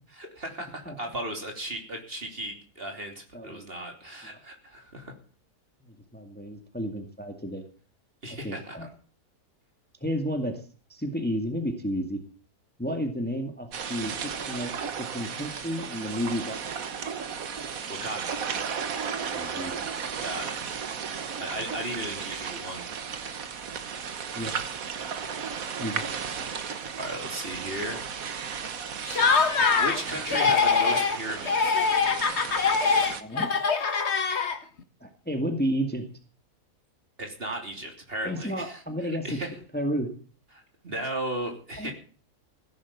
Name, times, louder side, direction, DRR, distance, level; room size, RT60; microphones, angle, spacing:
voice 1, 0.1-5.1 8.2-8.9 17.9-18.7 20.2-20.5 21.4-22.8 27.0-28.1 29.8-31.8 37.2-38.8 39.1-39.5 40.5-41.9, right 1 dB, 35° right, 3 dB, 3.3 m, -36 dB
voice 2, 3.3-3.7 4.2-4.4 5.8-7.6 8.4-8.9 10.0-12.2 12.8-16.6 19.3-19.7 24.3-24.5 25.8-26.1 33.2-33.5 35.0-36.1 38.2-39.4 39.7-40.1 41.8-41.9, equal, 5° left, 5 dB, 1.9 m, -32 dB
sound 1, 13.7-33.2, right 6 dB, 65° right, 1.6 m, -35 dB
Laughter, 29.1-30.0 30.3-31.2 31.5-34.8, left 5 dB, 45° left, 1.5 m, -23 dB
16.0 x 11.0 x 7.2 m, 0.42 s
omnidirectional pair, 1.6 m